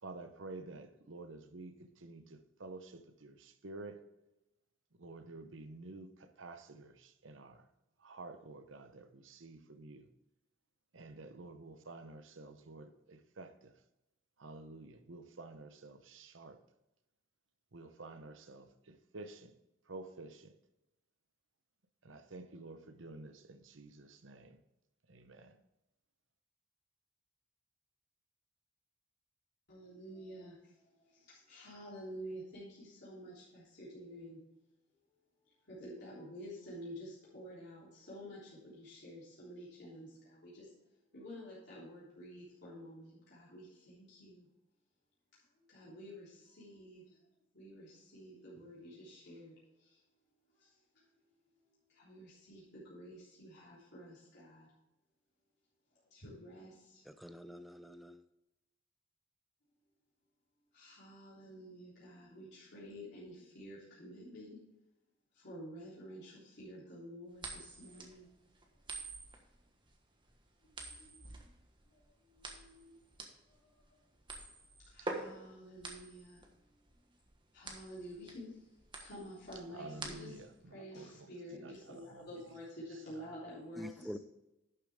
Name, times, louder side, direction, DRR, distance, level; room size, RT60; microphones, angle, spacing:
voice 1, 0.0-4.1 5.0-7.7 8.0-10.1 10.9-13.8 14.4-16.6 17.7-19.5 19.9-20.5 22.0-24.6 25.1-25.6 75.0-75.1 79.7-81.3 81.6-82.6 83.1-83.5, right 2 dB, 70° right, 0.9 m, -51 dB
voice 2, 29.7-34.4 35.7-44.5 45.3-47.2 47.5-50.0 50.5-51.1 51.9-54.7 56.1-57.0 60.7-64.6 65.3-68.3 70.6-71.5 71.9-73.0 73.5-74.0 74.8-76.8 77.5-78.6 79.0-80.4 80.7-84.2, equal, 60° left, 3.5 m, -50 dB
voice 3, 57.1-58.2 83.8-84.2, equal, ahead, 0.5 m, -46 dB
sound 1, 67.4-80.6, right 2 dB, 25° right, 1.4 m, -47 dB
11.5 x 6.9 x 3.6 m
head